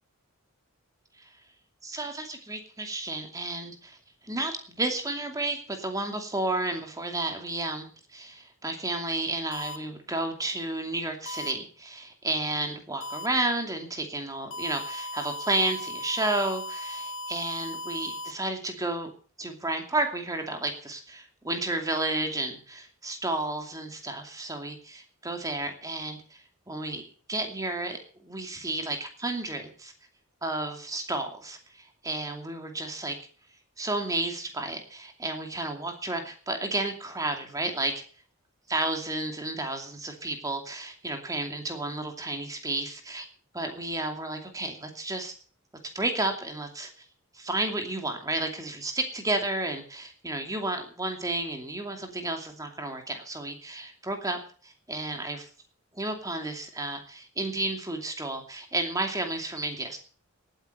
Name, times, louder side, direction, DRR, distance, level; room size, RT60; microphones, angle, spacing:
voice 1, 1.8-4.0 4.2-19.1 19.4-27.0 27.3-29.9 30.4-33.2 33.8-37.9 38.7-43.3 43.5-45.3 45.9-46.9 47.3-55.5 55.9-60.0, right 2 dB, 15° right, 5 dB, 2.6 m, -32 dB
sound 1, 9.5-9.8 11.3-11.5 13.0-13.3 14.5-18.3, left 1 dB, 65° left, 1.6 m, -37 dB
18.0 x 9.1 x 6.7 m, 0.42 s
head